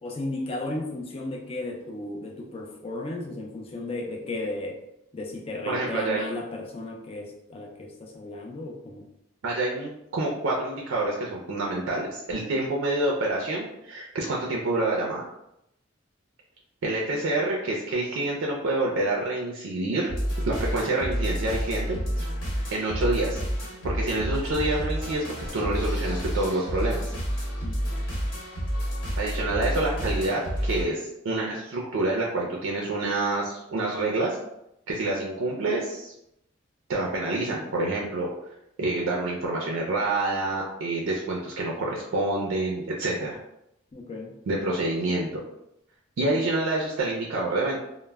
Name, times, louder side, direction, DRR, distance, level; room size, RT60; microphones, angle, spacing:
voice 1, 0.0-4.8 5.1-9.1 27.6-27.8 43.9-44.3, left 2 dB, 30° left, 0 dB, 0.4 m, -34 dB
voice 2, 5.6-6.3 9.4-15.2 16.8-20.1 20.4-22.3 22.7-23.4 23.8-25.2 25.5-27.0 29.2-34.4 34.9-36.1 36.9-38.3 38.8-43.4 44.5-45.3 46.2-47.8, right 2 dB, 85° right, -2 dB, 0.4 m, -27 dB
sound 1, 20.1-30.8, equal, 70° left, 1.1 m, -29 dB
2.1 x 2.0 x 3.3 m, 0.83 s
head